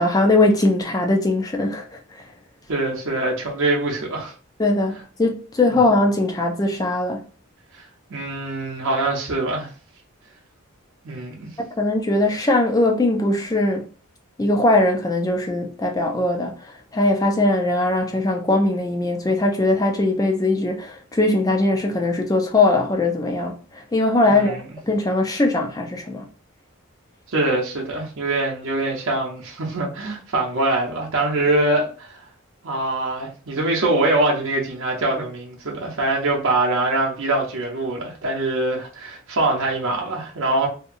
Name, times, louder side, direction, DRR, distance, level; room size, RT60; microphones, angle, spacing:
voice 1, 0.0-2.0 4.6-4.9 5.2-7.2 11.6-13.8 14.4-16.6 16.9-24.6 24.8-26.2, left 2 dB, 15° left, 0.3 m, -20 dB
voice 2, 2.7-4.3 7.7-7.8 8.1-9.7 11.0-11.5 24.3-24.7 27.3-32.2 32.6-40.7, right 2 dB, 60° right, 0.7 m, -23 dB
2.8 x 2.3 x 2.5 m
head